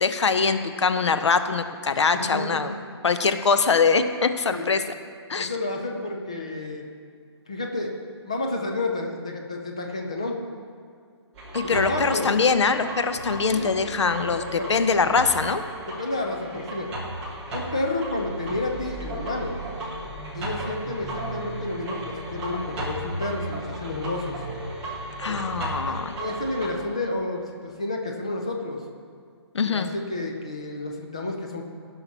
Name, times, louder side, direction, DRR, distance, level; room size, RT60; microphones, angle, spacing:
voice 1, 0.0-2.7 3.0-4.8 5.3-5.5 11.5-15.6 25.2-26.1 29.5-29.9, left 5 dB, 80° left, 10 dB, 0.8 m, -23 dB
voice 2, 5.4-6.9 7.5-7.9 8.2-10.4 11.6-12.3 13.5-13.7 14.2-14.7 15.9-16.9 17.5-19.6 20.3-24.4 25.3-25.6 25.9-28.8 29.6-31.7, left 2 dB, 15° left, 2 dB, 0.4 m, -30 dB
sound 1, 11.3-26.7, right 1 dB, 5° right, 0.8 m, -35 dB
16.0 x 5.8 x 4.1 m, 2.1 s
hypercardioid pair, 180°, 15 cm